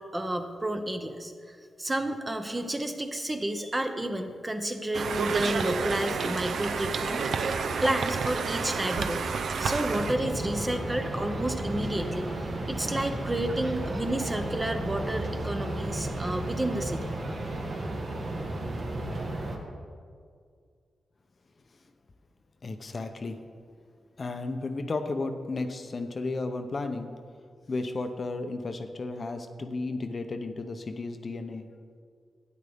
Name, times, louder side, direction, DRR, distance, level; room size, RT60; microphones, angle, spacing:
voice 1, 0.1-9.3 9.6-12.3 12.7-17.1, right 1 dB, 15° right, 6 dB, 0.7 m, -31 dB
Conversation, 4.9-10.1, right 5 dB, 70° right, 0.5 m, -30 dB
sound 1, 9.9-19.6, right 1 dB, 50° right, 1.3 m, -33 dB
voice 2, 22.6-23.4 24.2-27.1 27.7-31.7, left 3 dB, 35° left, 7 dB, 0.6 m, -33 dB
12.0 x 9.4 x 3.5 m, 2.1 s
wide cardioid pair, 130°, 0 cm